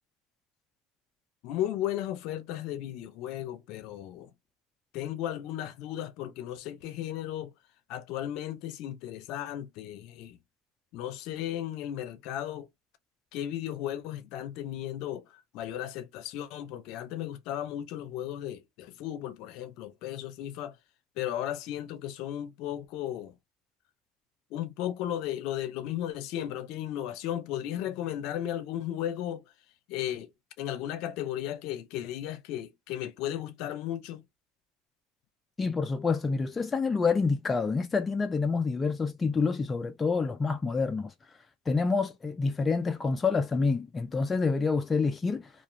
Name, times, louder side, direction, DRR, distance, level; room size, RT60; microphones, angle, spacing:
voice 1, 1.4-4.3 4.9-7.5 7.9-10.4 10.9-12.7 13.3-20.8 21.2-23.4 24.5-29.4 29.9-30.3 30.6-34.2, left 12 dB, 65° left, 0.6 m, -35 dB
voice 2, 35.6-41.1 41.7-45.5, left 4 dB, 20° left, 0.4 m, -27 dB
2.4 x 2.4 x 3.1 m
supercardioid pair, 105°, 0 cm